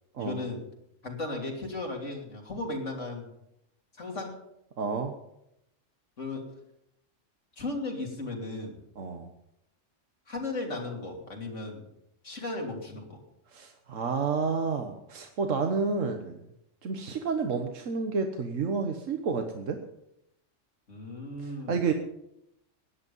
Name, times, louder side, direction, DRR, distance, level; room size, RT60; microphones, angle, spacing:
voice 1, 0.2-0.6 1.0-3.3 3.9-4.4 6.2-6.5 7.6-8.8 10.3-11.9 12.2-13.2 20.9-21.9, left 2 dB, 70° left, 0 dB, 3.4 m, -36 dB
voice 2, 4.8-5.1 9.0-9.3 13.5-16.4 16.8-19.8 21.4-21.9, right 5 dB, 85° right, 5 dB, 1.5 m, -30 dB
17.0 x 11.0 x 5.5 m, 0.80 s
omnidirectional pair, 1.3 m